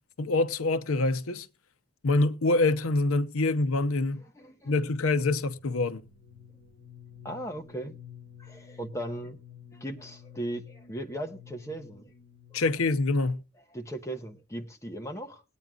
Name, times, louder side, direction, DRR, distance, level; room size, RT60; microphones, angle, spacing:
voice 1, 0.2-1.5 2.0-4.2 4.7-6.0 12.5-13.4, left 2 dB, 80° left, 0.7 m, -25 dB
voice 2, 4.3-4.7 7.2-7.9 8.4-9.4 9.7-12.1 12.5-12.6 13.7-15.4, right 1 dB, 15° left, 1.2 m, -37 dB
sound 1, 5.4-13.1, left 8 dB, 45° left, 3.4 m, -51 dB
20.0 x 9.2 x 2.4 m
head